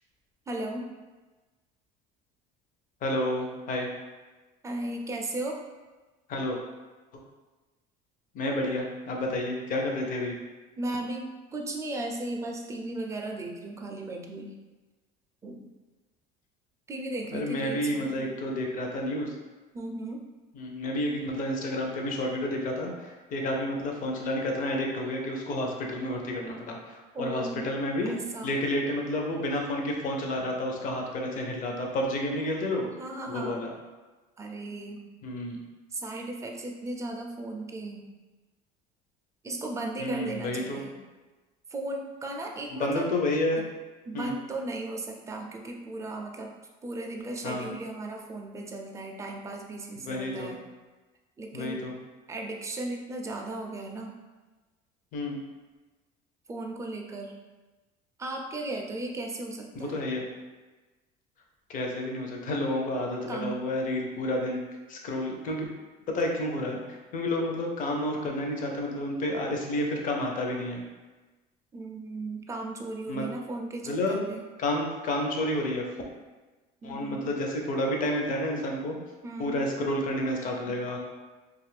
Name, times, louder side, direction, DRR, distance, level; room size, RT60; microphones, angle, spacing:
voice 1, 0.5-0.9 4.6-5.6 10.8-14.5 15.4-15.7 16.9-18.3 19.7-20.2 27.1-27.7 28.1-28.5 33.0-33.6 34.4-35.1 35.9-38.1 39.4-41.0 41.7-43.1 44.1-46.5 46.8-50.6 51.4-51.8 52.3-54.2 56.5-57.3 58.2-60.1 63.3-63.6 71.7-74.4 76.8-77.3 79.2-79.6 80.7-80.8, right 2 dB, 15° right, 1 dB, 0.4 m, -36 dB
voice 2, 3.0-3.9 6.3-6.6 8.3-10.3 17.3-19.3 20.6-28.1 28.4-32.9 33.3-33.7 35.2-35.6 40.0-40.8 42.7-43.6 44.1-44.4 47.4-47.7 50.1-50.5 51.5-51.9 55.1-55.4 59.7-60.2 61.7-64.6 64.9-65.7 66.1-70.8 73.1-73.3 73.9-74.2 74.6-75.8 76.8-79.0 79.4-81.0, left 1 dB, 45° left, 1 dB, 0.6 m, -30 dB
2.6 x 2.4 x 3.3 m, 1.2 s
supercardioid pair, 110°, 19 cm